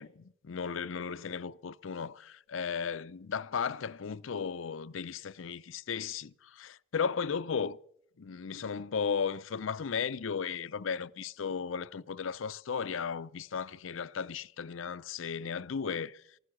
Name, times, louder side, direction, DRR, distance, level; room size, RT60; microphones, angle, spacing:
voice 1, 0.0-7.8 8.2-16.2, left 6 dB, 85° left, 0.5 m, -35 dB
14.5 x 13.5 x 7.3 m
head